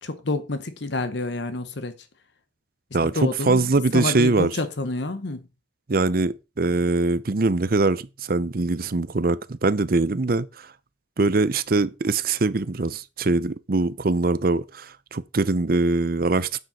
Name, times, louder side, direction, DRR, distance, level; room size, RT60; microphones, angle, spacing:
voice 1, 0.0-1.9 3.0-5.5, left 2 dB, 65° left, 1.0 m, -28 dB
voice 2, 2.9-4.5 5.9-10.7 11.2-16.6, right 3 dB, 50° right, 0.6 m, -22 dB
9.5 x 7.4 x 4.3 m
head